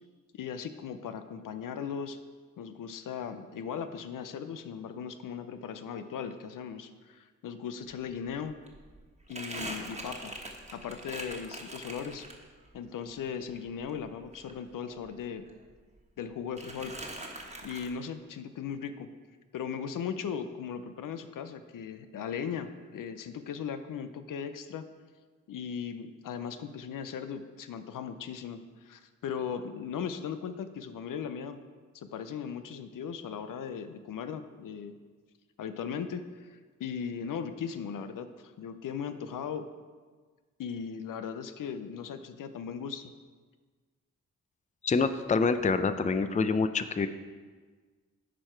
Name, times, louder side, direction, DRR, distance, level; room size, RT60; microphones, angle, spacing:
voice 1, 0.3-2.2 2.6-8.5 9.3-10.3 10.7-12.3 12.7-15.5 16.2-17.0 17.6-19.1 19.5-24.8 25.5-31.6 31.9-34.9 35.6-39.7 40.6-43.1, left 7 dB, 80° left, 10 dB, 0.6 m, -38 dB
Crumpling crinkling, 7.9-8.0 8.3-12.7 13.1-15.2 15.5-16.2 16.6-17.9, right 1 dB, 20° right, 1.4 m, -43 dB
voice 2, 44.8-47.1, left 4 dB, 25° left, 10 dB, 0.5 m, -26 dB
10.0 x 4.8 x 4.4 m, 1.5 s
cardioid pair, 60°, 32 cm